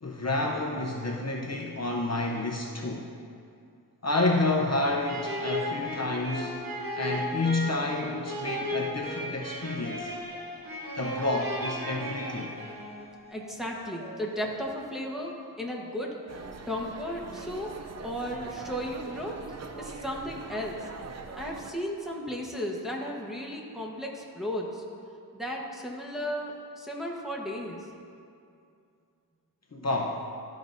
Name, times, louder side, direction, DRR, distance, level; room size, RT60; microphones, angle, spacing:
voice 1, 0.0-3.1 4.0-6.6 7.0-10.1 10.9-12.5 29.7-30.2, left 2 dB, 45° left, -1 dB, 0.6 m, -29 dB
sound 1, 5.1-13.1, left 1 dB, 65° right, 0.9 m, -35 dB
sound 2, 6.1-17.1, left 1 dB, 25° right, 0.8 m, -49 dB
voice 2, 13.3-16.1 16.7-17.7 18.0-19.4 19.7-20.8 21.3-24.8 25.3-27.9, equal, ahead, -2 dB, 1.0 m, -35 dB
sound 3, 16.3-21.7, right 4 dB, 45° right, 0.4 m, -42 dB
13.0 x 5.1 x 2.6 m, 2.4 s
wide cardioid pair, 55°, 38 cm